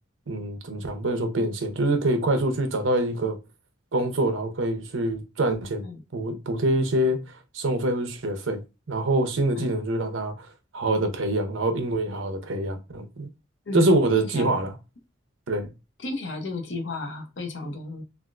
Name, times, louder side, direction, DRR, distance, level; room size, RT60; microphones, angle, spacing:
voice 1, 0.3-3.4 3.9-5.8 6.1-7.2 7.5-8.6 8.9-10.5 10.7-13.3 13.7-14.7 15.5-15.7, right 1 dB, 80° right, 0.7 m, -25 dB
voice 2, 14.1-14.7 16.0-18.0, left 3 dB, 65° left, 0.7 m, -34 dB
3.4 x 2.4 x 2.4 m
head